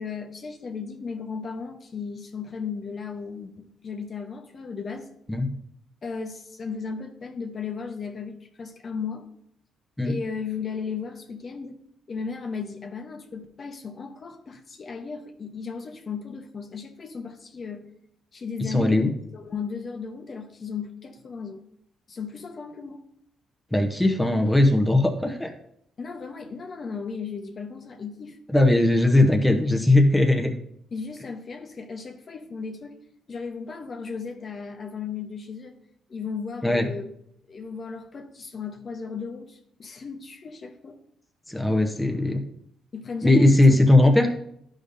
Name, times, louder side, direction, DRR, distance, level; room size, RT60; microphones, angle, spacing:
voice 1, 0.0-5.1 6.0-9.3 10.0-11.8 12.1-17.9 18.3-21.6 22.1-23.1 26.0-28.4 30.9-33.0 33.3-35.7 36.1-37.1 37.5-41.0 42.9-43.8, left 5 dB, 45° left, 4 dB, 0.8 m, -35 dB
voice 2, 18.7-19.1 23.7-25.5 28.5-30.5 36.6-36.9 41.5-42.4 43.2-44.3, left 2 dB, 5° left, 2 dB, 0.9 m, -19 dB
11.0 x 5.1 x 2.7 m, 0.72 s
cardioid pair, 90°, 0 cm